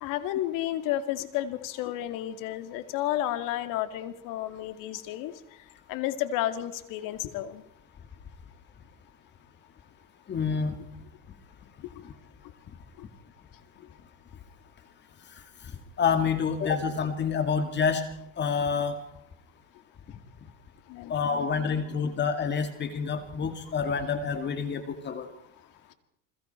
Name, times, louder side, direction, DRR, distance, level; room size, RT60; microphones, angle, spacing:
voice 1, 0.0-5.3 5.9-7.6 20.9-21.5 21.8-21.9, left 13 dB, 50° left, 10 dB, 2.3 m, -32 dB
voice 2, 10.3-10.7 16.0-18.0 18.4-19.0 21.1-25.3, left 6 dB, 25° left, 8 dB, 2.3 m, -27 dB
29.0 x 21.5 x 4.5 m, 0.76 s
supercardioid pair, 135°, 41 cm